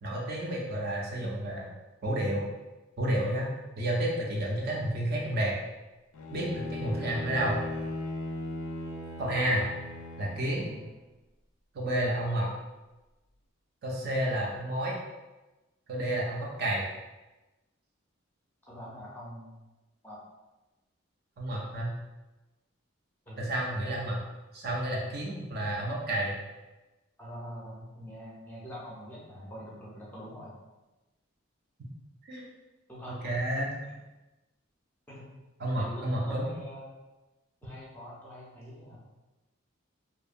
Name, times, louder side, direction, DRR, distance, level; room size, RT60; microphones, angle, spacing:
voice 1, 0.0-1.7 2.0-2.4 3.0-3.5 3.8-5.6 6.3-7.6 9.2-9.7 10.2-10.6 11.7-12.5 13.8-15.0 15.9-16.8 21.4-21.9 23.4-24.2 24.5-26.4 32.2-32.5 33.1-33.7 35.6-36.5, right 1 dB, 45° right, -2 dB, 0.4 m, -30 dB
Bowed string instrument, 6.1-11.0, left 2 dB, 75° left, 0.4 m, -38 dB
voice 2, 18.7-19.5 20.0-20.2 23.3-23.4 27.2-30.5 32.9-33.3 33.8-33.9 35.1-35.3 35.7-36.9 37.6-39.0, equal, 10° left, -6 dB, 0.5 m, -44 dB
2.6 x 2.1 x 2.4 m, 1.1 s
head